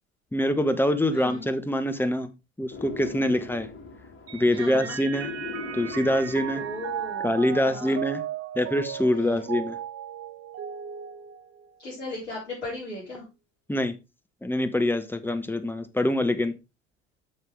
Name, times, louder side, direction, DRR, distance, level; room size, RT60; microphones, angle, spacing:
voice 1, 0.3-2.3 2.6-3.7 4.3-5.3 5.7-6.6 7.2-8.2 8.6-9.8 13.7-13.9 14.4-16.5, left 1 dB, 5° left, 8 dB, 1.1 m, -25 dB
voice 2, 1.1-1.5 4.5-5.0 6.5-7.3 7.6-8.0 9.1-9.4 11.8-13.2, left 1 dB, 80° left, -6 dB, 4.7 m, -37 dB
sound 1, 2.7-7.3, left 4 dB, 35° left, 2.3 m, -40 dB
Mallet percussion, 4.3-12.0, right 10 dB, 45° right, 1.0 m, -36 dB
9.1 x 6.5 x 3.5 m, 0.26 s
figure-of-eight pair, 65°, 35 cm